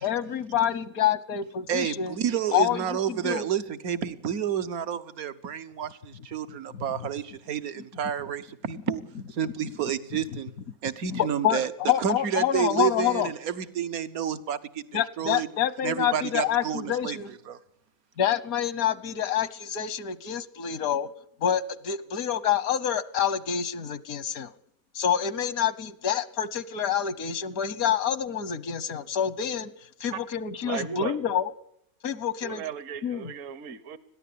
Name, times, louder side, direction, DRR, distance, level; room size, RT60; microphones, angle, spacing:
voice 1, 0.0-2.2 2.5-3.5 9.4-9.5 11.1-13.3 14.9-17.3 18.2-21.1 21.4-24.5 24.9-29.7 30.0-31.5 32.0-32.7 33.0-33.3, left 9 dB, 85° left, 1.5 m, -27 dB
voice 2, 1.7-9.0 9.3-10.5 10.8-11.7 12.0-14.8 15.2-15.5 15.8-17.2 17.5-17.6, right 9 dB, 85° right, 1.6 m, -30 dB
voice 3, 30.6-31.2 32.4-34.0, right 8 dB, 65° right, 1.4 m, -35 dB
21.0 x 14.5 x 8.5 m
omnidirectional pair, 1.5 m